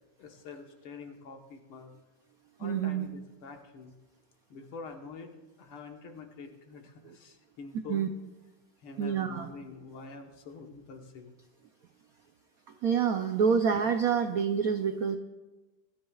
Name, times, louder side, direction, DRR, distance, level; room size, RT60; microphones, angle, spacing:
voice 1, 0.2-1.9 2.6-3.9 4.5-5.3 5.6-8.1 8.8-11.4, left 4 dB, 90° left, 4 dB, 2.1 m, -46 dB
voice 2, 2.6-3.1 7.0-7.2 7.9-8.1 9.0-9.5 12.8-15.2, right 6 dB, 80° right, 7 dB, 0.8 m, -27 dB
23.5 x 13.5 x 2.4 m, 1.1 s
omnidirectional pair, 2.3 m